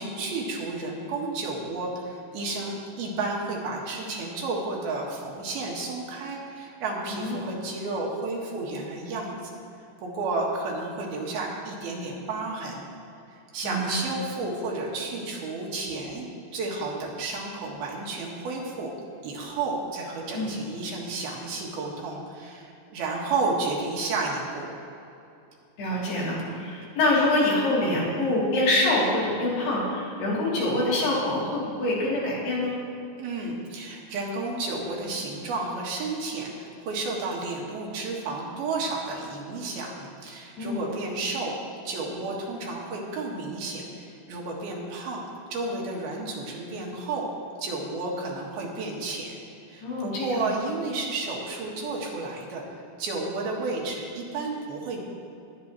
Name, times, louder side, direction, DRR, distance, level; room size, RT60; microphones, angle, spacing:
voice 1, 0.0-9.5 10.0-12.8 13.5-16.3 16.5-18.9 19.2-24.7 33.2-41.5 41.8-45.2 45.5-47.3 47.6-49.4 49.7-52.6 53.0-55.0, right 3 dB, 75° right, -2 dB, 3.4 m, -32 dB
voice 2, 13.6-14.0 20.3-20.5 25.8-32.8 40.6-40.9 49.8-50.5, left 1 dB, 85° left, -6 dB, 4.9 m, -25 dB
19.5 x 9.6 x 3.0 m, 2.7 s
omnidirectional pair, 4.5 m